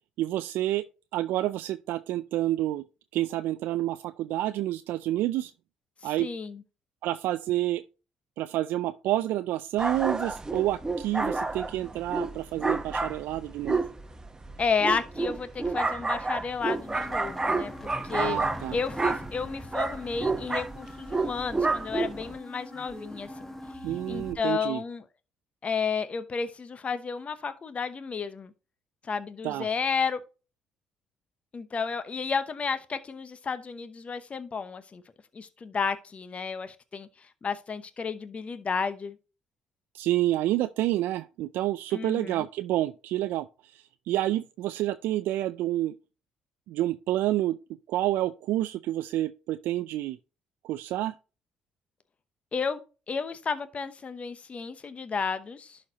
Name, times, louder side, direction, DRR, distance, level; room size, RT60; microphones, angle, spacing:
voice 1, 0.2-0.8 1.1-2.8 3.1-5.5 6.0-6.3 7.0-7.8 8.4-13.8 18.1-18.8 23.8-24.8 29.4-29.7 39.9-45.9 46.7-47.6 47.9-50.2 50.6-51.1, right 14 dB, 75° right, 0.3 m, -29 dB
voice 2, 6.0-6.6 14.6-18.4 18.7-23.5 24.1-25.0 25.6-28.5 29.0-30.2 31.5-35.0 35.3-39.2 41.9-42.5 52.5-52.8 53.1-55.8, left 5 dB, 40° left, 0.9 m, -32 dB
sound 1, 9.8-22.4, right 3 dB, 20° right, 0.9 m, -30 dB
sound 2, 16.6-24.3, left 1 dB, 10° left, 1.2 m, -43 dB
11.5 x 4.3 x 2.8 m
hypercardioid pair, 60°, 3 cm